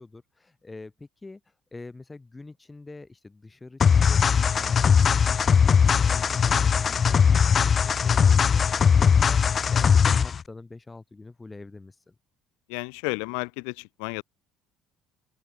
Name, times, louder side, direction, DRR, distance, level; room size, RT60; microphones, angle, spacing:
voice 1, 0.0-12.2, left 3 dB, 15° left, 4.1 m, -45 dB
sound 1, 3.8-10.4, left 6 dB, 35° left, 0.3 m, -20 dB
voice 2, 12.7-14.2, left 40 dB or more, 90° left, 0.7 m, -32 dB
open air
supercardioid pair, 100°, 0 cm